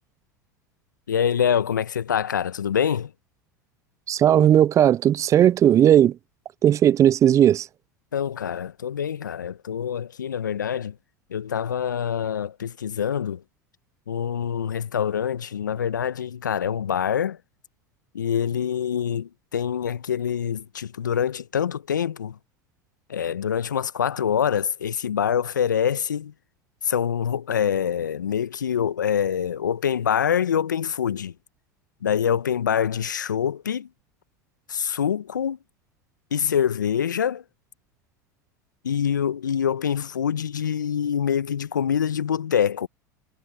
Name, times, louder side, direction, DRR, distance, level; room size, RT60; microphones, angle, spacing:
voice 1, 1.1-3.1 8.1-10.9 11.3-13.4 14.1-17.4 18.1-22.3 23.1-26.3 26.8-31.3 32.0-33.9 34.7-35.6 36.3-37.4 38.8-42.9, left 8 dB, 85° left, 1.1 m, -25 dB
voice 2, 4.1-6.2 6.6-7.7, right 10 dB, 30° right, 0.4 m, -17 dB
hypercardioid pair, 80°, 10 cm